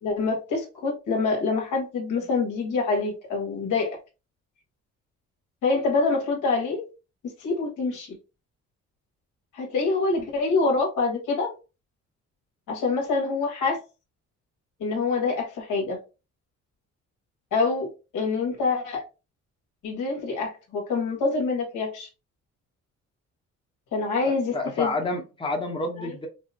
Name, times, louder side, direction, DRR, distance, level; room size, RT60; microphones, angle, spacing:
voice 1, 0.0-4.0 5.6-6.8 7.4-8.2 9.5-11.5 12.7-13.8 14.8-16.0 17.5-17.9 18.1-19.0 19.8-22.1 23.9-24.9 26.0-26.1, left 4 dB, 80° left, 1.7 m, -26 dB
voice 2, 24.3-26.3, left 2 dB, 15° left, 0.9 m, -29 dB
5.2 x 2.1 x 2.8 m
cardioid pair, 90°, 30 cm